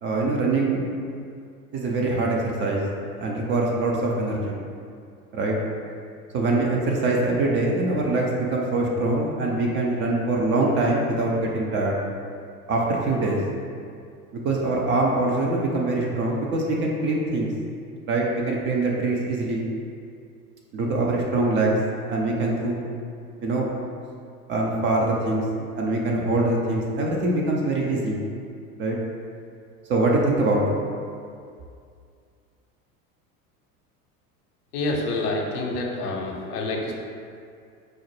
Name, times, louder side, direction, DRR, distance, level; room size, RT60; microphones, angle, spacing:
voice 1, 0.0-0.9 1.7-2.9 3.2-4.6 5.3-5.6 6.3-12.0 12.7-13.4 14.4-17.5 18.0-19.6 20.7-21.8 22.1-22.8 23.4-23.7 24.5-25.4 25.7-28.2 28.8-29.0 29.9-30.6, right 2 dB, 25° right, -2 dB, 0.4 m, -23 dB
voice 2, 34.7-36.9, left 2 dB, 80° left, 0 dB, 0.7 m, -27 dB
4.8 x 2.1 x 3.1 m, 2.3 s
hypercardioid pair, 80°, 46 cm